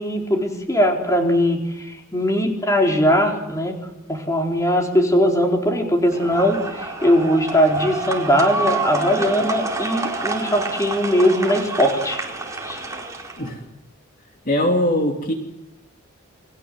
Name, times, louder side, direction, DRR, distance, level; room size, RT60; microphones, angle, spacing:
voice 1, 0.0-3.8 4.1-12.2 12.6-12.8, equal, 15° left, 2 dB, 4.1 m, -20 dB
sound 1, 6.1-13.5, right 3 dB, 15° right, 4.5 m, -28 dB
voice 2, 14.4-15.3, left 1 dB, 45° left, 3 dB, 3.0 m, -20 dB
29.5 x 22.0 x 7.7 m, 0.87 s
head